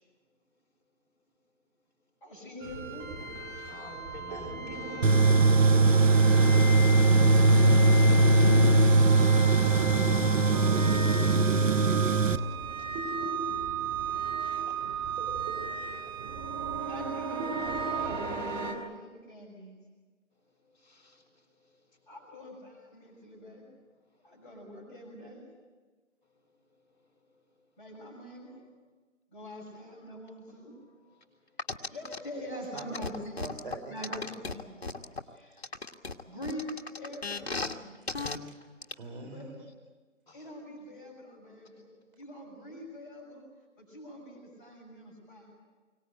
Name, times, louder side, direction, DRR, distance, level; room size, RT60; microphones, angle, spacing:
voice 1, 2.2-3.2 7.4-8.1 16.9-19.8 22.1-23.7 24.2-25.5 27.8-28.6 29.3-30.8 31.9-33.4 33.9-34.8 35.3-35.6 36.2-36.7 36.9-37.9 39.3-39.5 40.3-41.9 42.2-43.4 43.8-45.5, equal, 15° left, 6.1 m, -44 dB
sound 1, 2.6-18.7, right 4 dB, 10° right, 2.2 m, -34 dB
voice 2, 3.7-5.1 5.4-5.6 14.7-14.8 20.9-21.2 40.3-40.4, left 2 dB, 35° left, 5.9 m, -46 dB
Tools, 5.0-12.4, right 3 dB, 80° right, 1.2 m, -21 dB
sound 2, 31.6-32.2 32.8-35.2 35.6-37.7 38.1-38.4 38.8-38.9, left 3 dB, 55° left, 1.6 m, -35 dB
voice 3, 32.7-34.2 38.0-38.6 39.0-39.7, right 3 dB, 45° right, 3.7 m, -46 dB
24.0 x 18.5 x 9.0 m
figure-of-eight pair, 155°, 38 cm